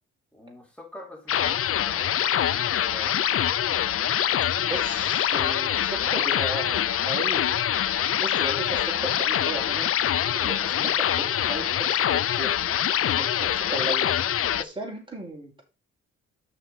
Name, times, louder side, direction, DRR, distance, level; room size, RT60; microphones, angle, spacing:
voice 1, 0.3-3.2, left 1 dB, 5° left, 4.1 m, -45 dB
sound 1, 1.3-14.6, left 10 dB, 50° left, 0.6 m, -24 dB
voice 2, 4.6-7.6 8.2-9.9 10.3-12.6 13.1-14.1 14.5-15.6, right 1 dB, 15° right, 4.9 m, -36 dB
6.8 x 5.9 x 5.8 m
cardioid pair, 90°, 30 cm